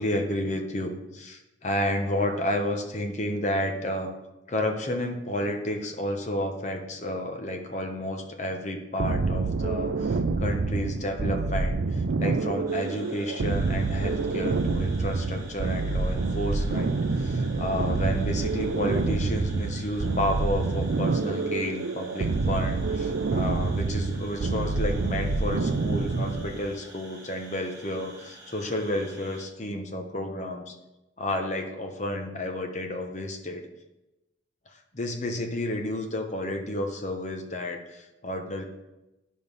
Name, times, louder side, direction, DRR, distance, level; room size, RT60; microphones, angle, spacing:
voice 1, 0.0-4.1 4.5-30.7 31.2-33.7 34.9-38.6, left 1 dB, 35° left, 4 dB, 1.0 m, -31 dB
sound 1, 9.0-26.6, right 3 dB, 75° right, 0.5 m, -27 dB
sound 2, 12.7-29.5, right 2 dB, 15° right, 1.7 m, -49 dB
10.5 x 5.3 x 5.4 m, 1.0 s
head